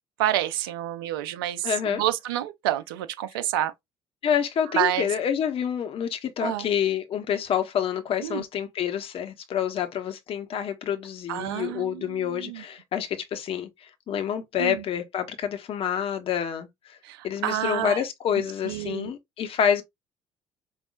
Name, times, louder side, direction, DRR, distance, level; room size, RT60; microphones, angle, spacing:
voice 1, 0.2-3.7 4.7-5.1 6.4-6.6 8.2-8.4 11.3-12.6 14.6-14.8 17.0-18.0 18.3-19.1, right 12 dB, 80° right, 0.6 m, -28 dB
voice 2, 1.6-2.0 4.2-17.0 17.2-19.8, left 8 dB, 50° left, 1.1 m, -28 dB
5.3 x 2.6 x 2.4 m
hypercardioid pair, 55°, 12 cm